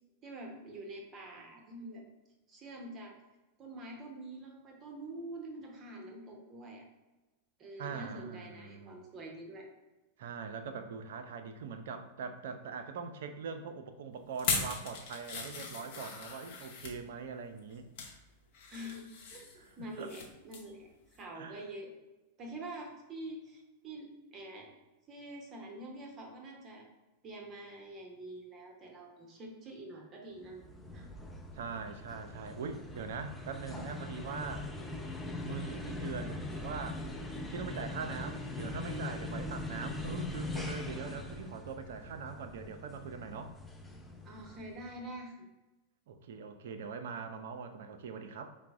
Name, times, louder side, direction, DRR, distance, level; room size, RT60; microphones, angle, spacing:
voice 1, 0.2-2.0 2.5-3.1 3.6-6.9 7.6-9.7 18.7-21.9 22.4-24.7 25.1-26.9 27.2-30.6 30.9-31.1 44.2-45.5, right 1 dB, 30° right, 1 dB, 0.8 m, -46 dB
voice 2, 7.8-9.0 10.2-17.9 19.6-20.1 21.3-21.6 31.5-34.7 35.4-37.0 37.5-43.5 46.1-48.5, right 5 dB, 60° right, 8 dB, 0.4 m, -42 dB
sound 1, 14.4-17.0 17.6-18.2 18.5-20.3 20.5-20.7 21.1-21.2, left 4 dB, 50° left, 0.8 m, -38 dB
sound 2, 30.4-44.9, left 2 dB, 5° left, 0.4 m, -41 dB
4.7 x 2.0 x 3.5 m, 1.1 s
figure-of-eight pair, 90°, 0 cm